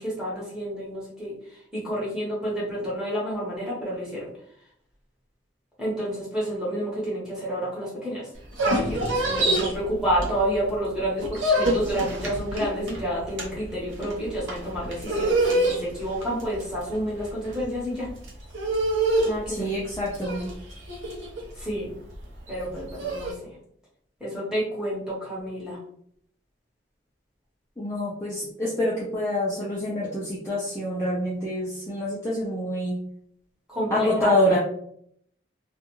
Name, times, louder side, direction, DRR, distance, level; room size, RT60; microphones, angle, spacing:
voice 1, 0.0-1.3 1.7-4.2 5.8-8.3 8.6-18.1 19.2-19.7 21.6-21.9 22.5-23.5 24.2-25.8 33.7-34.3, equal, 5° right, -7 dB, 1.0 m, -29 dB
sound 1, 8.4-10.7 11.0-23.3, right 1 dB, 90° right, 0.8 m, -27 dB
voice 2, 19.5-20.5 27.8-33.0 33.9-34.6, left 1 dB, 15° left, -7 dB, 0.4 m, -26 dB
2.5 x 2.3 x 2.9 m, 0.68 s
head